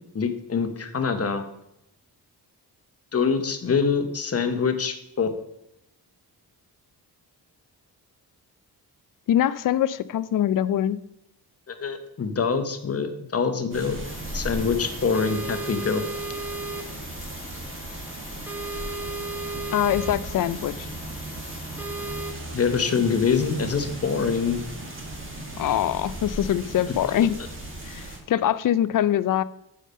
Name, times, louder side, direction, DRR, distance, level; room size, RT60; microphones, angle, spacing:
voice 1, 0.1-1.4 3.1-5.3 11.7-14.0 14.3-16.0 22.5-24.6, left 5 dB, 35° left, 8 dB, 1.0 m, -25 dB
voice 2, 9.3-11.0 19.7-20.9 25.6-27.4 27.9-29.4, left 11 dB, 55° left, 17 dB, 0.4 m, -23 dB
sound 1, 13.7-28.2, right 1 dB, 30° right, 1.8 m, -37 dB
sound 2, 14.0-22.3, right 2 dB, 5° right, 1.1 m, -36 dB
6.6 x 5.0 x 5.4 m, 0.83 s
cardioid pair, 80°, 39 cm